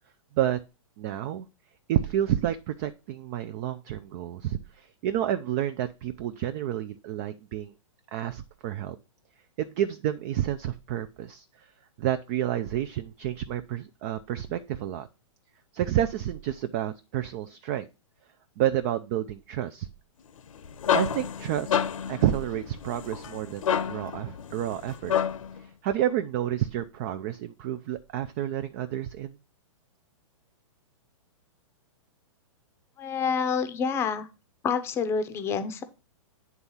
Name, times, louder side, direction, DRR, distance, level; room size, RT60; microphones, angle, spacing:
voice 1, 1.0-1.4 1.9-7.7 8.1-9.0 9.6-11.7 12.0-15.1 15.7-17.9 18.6-19.9 20.9-21.7 22.1-25.2 25.8-29.4, right 11 dB, 30° right, 10 dB, 0.4 m, -29 dB
sound 1, 20.4-25.6, left 8 dB, 80° left, 0.9 m, -29 dB
voice 2, 33.0-34.3 34.6-35.8, left 6 dB, 15° left, 10 dB, 0.7 m, -28 dB
9.4 x 3.6 x 5.5 m, 0.30 s
hypercardioid pair, 155°, 17 cm